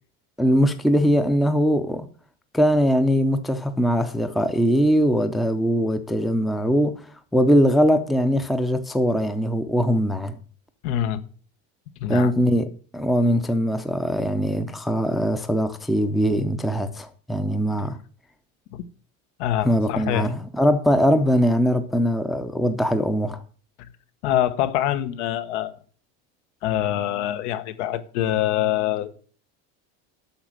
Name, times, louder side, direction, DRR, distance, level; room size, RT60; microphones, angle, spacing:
voice 1, 0.4-2.1 2.5-10.4 12.1-18.0 19.6-23.4, equal, ahead, 0.4 m, -21 dB
voice 2, 10.8-11.2 12.0-12.3 18.7-18.8 19.4-20.3 24.2-25.8 26.6-29.3, left 12 dB, 85° left, 1.2 m, -25 dB
8.8 x 6.5 x 7.4 m
cardioid pair, 165°, 34 cm